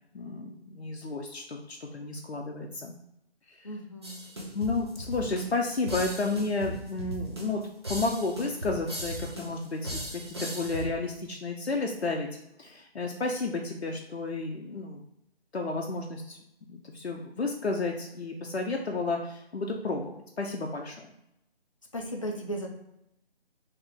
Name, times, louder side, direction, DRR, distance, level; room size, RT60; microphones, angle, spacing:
voice 1, 0.1-2.9 3.5-3.7 4.5-7.6 7.9-12.3 12.6-15.0 15.5-16.4 16.7-21.1, left 3 dB, 90° left, 1 dB, 0.5 m, -32 dB
voice 2, 3.6-4.2 21.9-22.7, right 1 dB, 30° left, 1 dB, 0.5 m, -35 dB
sound 1, 4.0-10.8, equal, 25° right, 0.5 m, -38 dB
3.6 x 2.8 x 3.3 m, 0.82 s
figure-of-eight pair, 150°, 32 cm